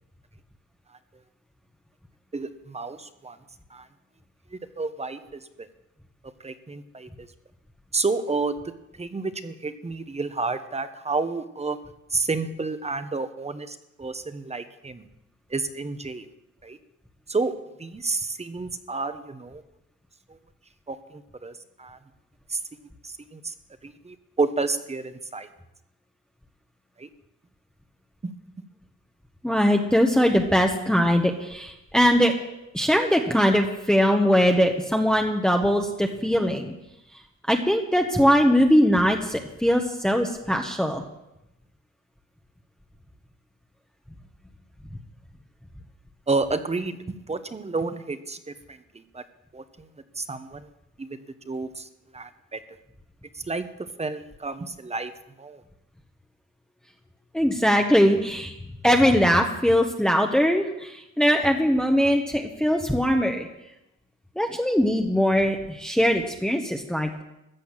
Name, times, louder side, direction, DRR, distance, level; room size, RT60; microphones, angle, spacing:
voice 1, 2.3-3.4 3.7-3.9 4.5-5.7 6.2-7.3 7.9-8.6 9.0-11.8 12.1-15.1 15.5-16.3 16.6-16.8 17.3-17.5 17.8-19.6 20.3-20.4 20.9-22.0 22.5-22.6 23.0-23.5 23.8-25.5 27.0-27.1 28.2-28.3 46.3-49.2 49.5-49.9 50.1-50.7 51.0-51.2 51.5-52.6 53.3-55.1 55.4-55.6, right 3 dB, 20° right, 11 dB, 1.1 m, -30 dB
voice 2, 29.4-32.3 32.7-36.7 37.5-41.0 57.3-58.5 58.8-63.5 64.4-67.2, equal, ahead, 2 dB, 1.2 m, -21 dB
14.5 x 8.3 x 7.4 m, 0.90 s
cardioid pair, 90°, 30 cm